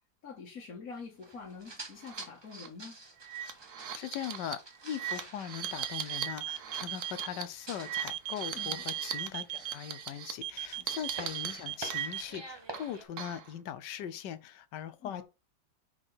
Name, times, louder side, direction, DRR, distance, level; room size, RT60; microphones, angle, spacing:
voice 1, 0.2-3.0 8.5-8.8 10.8-11.0 15.0-15.2, left 5 dB, 50° left, 1.8 m, -46 dB
sound 1, 1.2-7.4 7.7-8.0 8.3-8.7 9.1-10.3 10.6-13.0, right 2 dB, 20° right, 0.7 m, -48 dB
sound 2, 2.0-2.2 2.6-2.7 3.2-9.3 9.5-10.3 10.9-12.4 12.7-13.5, right 8 dB, 60° right, 1.4 m, -40 dB
voice 2, 3.8-15.2, left 10 dB, 75° left, 1.2 m, -40 dB
sound 3, 5.6-7.3 7.9-9.7 10.4-12.2, right 13 dB, 80° right, 1.3 m, -37 dB
5.6 x 4.9 x 4.0 m
omnidirectional pair, 2.0 m